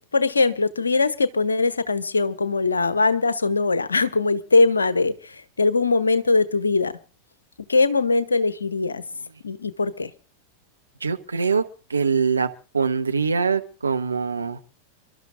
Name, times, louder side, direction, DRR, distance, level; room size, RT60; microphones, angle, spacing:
voice 1, 0.1-6.9 7.7-9.0 9.4-10.1, left 3 dB, 75° left, 1.0 m, -21 dB
voice 2, 11.0-11.6 11.9-12.5 12.7-14.6, right 5 dB, 75° right, 1.0 m, -23 dB
29.0 x 12.5 x 2.6 m
figure-of-eight pair, 90°, 0 cm